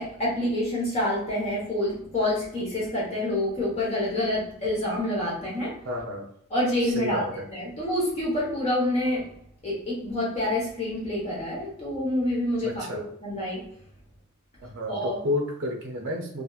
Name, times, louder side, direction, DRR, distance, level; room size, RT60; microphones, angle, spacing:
voice 1, 0.0-5.8 6.5-7.3 7.5-9.3 9.6-13.6 14.9-15.2, left 1 dB, 30° left, -6 dB, 1.1 m, -27 dB
voice 2, 5.8-6.3 6.8-7.5 12.6-13.0 14.6-16.4, left 1 dB, 55° right, 1 dB, 0.5 m, -31 dB
2.8 x 2.5 x 2.3 m, 0.70 s
head